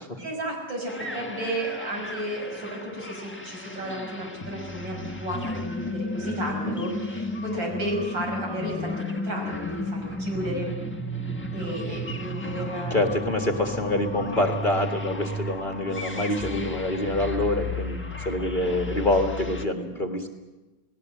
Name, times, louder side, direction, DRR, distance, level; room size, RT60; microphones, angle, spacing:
voice 1, 0.2-10.8 11.5-13.0 16.5-16.7, equal, 75° right, 1 dB, 7.0 m, -33 dB
sound 1, 0.9-19.7, left 1 dB, 5° left, 1.1 m, -33 dB
voice 2, 6.7-7.0 12.9-20.3, left 1 dB, 25° left, 4 dB, 1.7 m, -26 dB
29.0 x 18.5 x 7.7 m, 1.2 s
omnidirectional pair, 2.1 m